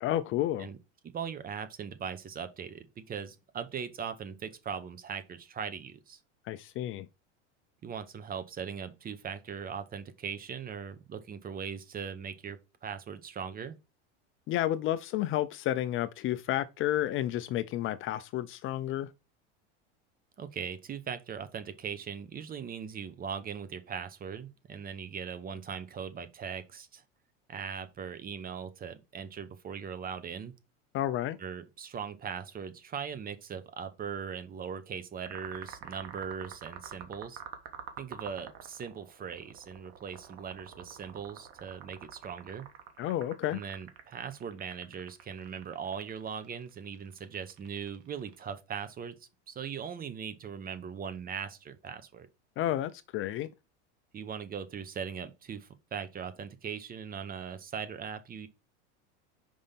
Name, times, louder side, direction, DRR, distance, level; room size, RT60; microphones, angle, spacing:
voice 1, 0.0-0.7 6.5-7.1 14.5-19.1 30.9-31.4 43.0-43.6 52.6-53.5, left 13 dB, 35° left, 0.4 m, -31 dB
voice 2, 1.0-6.2 7.8-13.8 20.4-27.0 27.5-30.5 31.4-37.4 38.0-42.7 43.5-49.2 49.5-52.3 54.1-58.5, right 7 dB, 25° right, 0.8 m, -40 dB
sound 1, 35.3-48.5, right 9 dB, 65° right, 1.3 m, -47 dB
5.2 x 3.5 x 5.7 m
supercardioid pair, 105°, 35 cm